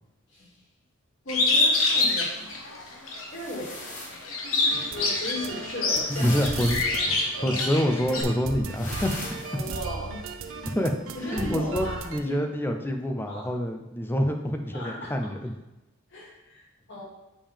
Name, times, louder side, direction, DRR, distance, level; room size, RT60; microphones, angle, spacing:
voice 1, 1.2-2.4 3.3-3.7 4.9-6.4 7.0-7.1 7.4-7.5 9.5-10.6 11.1-12.4 13.3-13.5 14.7-15.3 16.1-17.0, left 1 dB, 60° left, -4 dB, 2.4 m, -37 dB
Bird, 1.3-3.3 3.7-8.2, left 3 dB, 90° left, 1.2 m, -25 dB
sound 1, 3.3-4.3 6.0-6.8 8.7-9.8, left 2 dB, 40° left, 1.4 m, -39 dB
sound 2, 4.7-12.2, right 4 dB, 80° right, 0.6 m, -37 dB
voice 2, 6.1-9.5 10.7-10.9 11.2-15.5, equal, 10° left, 4 dB, 0.6 m, -27 dB
7.3 x 5.2 x 3.5 m, 0.99 s
head